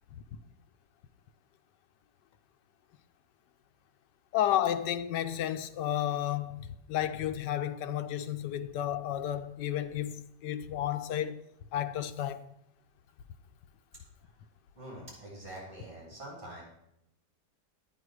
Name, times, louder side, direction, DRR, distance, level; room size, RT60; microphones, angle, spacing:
voice 1, 4.3-11.4 11.7-12.4, left 11 dB, 90° left, 1.3 m, -32 dB
voice 2, 14.7-16.6, right 1 dB, 15° right, 4.0 m, -45 dB
10.5 x 8.9 x 4.7 m
omnidirectional pair, 1.8 m